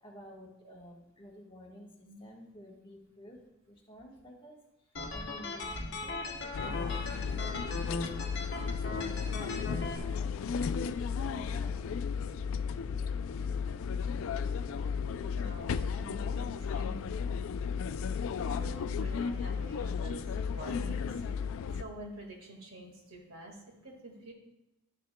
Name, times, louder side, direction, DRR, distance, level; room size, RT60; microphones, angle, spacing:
voice 1, 0.0-5.7 6.0-11.8 23.0-23.1, equal, 25° left, -2 dB, 1.3 m, -53 dB
sound 1, 5.0-10.0, left 2 dB, 50° left, 0.8 m, -38 dB
sound 2, 6.5-21.8, left 6 dB, 75° left, 0.3 m, -34 dB
voice 2, 15.3-17.1 18.4-21.2 21.7-24.3, right 1 dB, 85° right, 0 dB, 1.8 m, -48 dB
11.0 x 6.5 x 2.2 m, 0.94 s
head